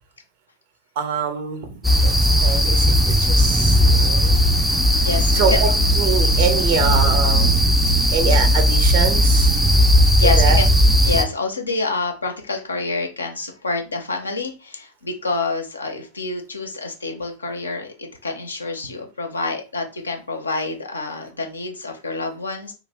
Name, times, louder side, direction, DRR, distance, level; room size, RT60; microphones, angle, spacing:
voice 1, 1.0-1.8 2.4-4.5 5.3-5.7 6.0-7.5 8.1-9.5 10.4-10.6, right 6 dB, 50° right, 6 dB, 0.6 m, -24 dB
sound 1, 1.8-11.2, equal, ahead, 0.4 m, -16 dB
voice 2, 5.0-5.6 8.1-8.2 10.2-10.7 11.0-22.7, left 3 dB, 75° left, 3 dB, 0.6 m, -27 dB
2.6 x 2.1 x 3.2 m, 0.32 s
figure-of-eight pair, 90°, 0 cm